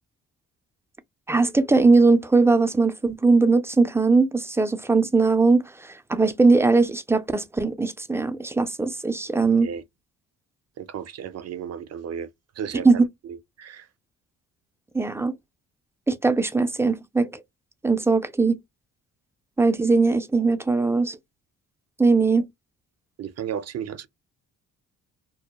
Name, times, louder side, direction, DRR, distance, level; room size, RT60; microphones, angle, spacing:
voice 1, 1.3-5.6 6.1-9.7 12.8-13.0 14.9-15.3 16.1-17.3 17.8-18.6 19.6-21.2 22.0-22.5, right 3 dB, 10° right, 0.4 m, -20 dB
voice 2, 9.4-9.8 10.8-12.3 12.5-12.9 13.2-13.9 23.2-24.1, right 8 dB, 50° right, 0.6 m, -34 dB
2.2 x 2.1 x 2.8 m
cardioid pair, 75°, 32 cm